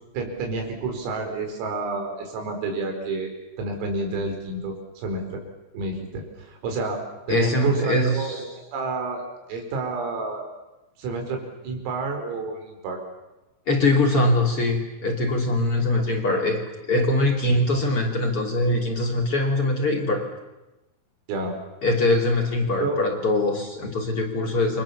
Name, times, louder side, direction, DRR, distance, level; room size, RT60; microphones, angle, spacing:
voice 1, 0.1-3.3 3.6-5.4 5.7-7.0 7.3-9.2 9.5-10.5 11.0-13.0 21.3-21.5 22.8-23.0, right 3 dB, 90° right, 4 dB, 7.2 m, -29 dB
voice 2, 7.3-8.5 13.7-20.3 21.8-24.8, left 1 dB, 35° left, 1 dB, 2.6 m, -22 dB
29.5 x 24.0 x 7.2 m, 1.0 s
omnidirectional pair, 5.8 m